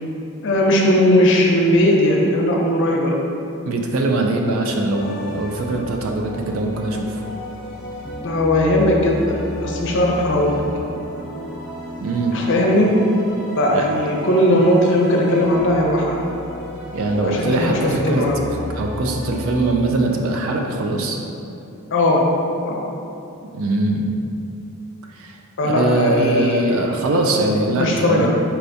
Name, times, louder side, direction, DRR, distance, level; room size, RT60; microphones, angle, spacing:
voice 1, 0.4-3.2 8.2-10.6 12.3-13.0 13.5-16.2 17.2-18.4 21.9-22.2 22.7-22.8 25.6-26.7 27.8-28.3, left 1 dB, 55° left, -1 dB, 0.6 m, -18 dB
voice 2, 3.7-7.2 12.0-12.4 13.7-13.9 16.9-18.3 18.7-21.2 23.5-24.1 25.1-25.4 25.6-28.3, right 2 dB, 60° right, 2 dB, 0.3 m, -21 dB
sound 1, 4.9-19.7, equal, 15° left, 0.7 m, -33 dB
4.4 x 3.4 x 2.6 m, 2.7 s
head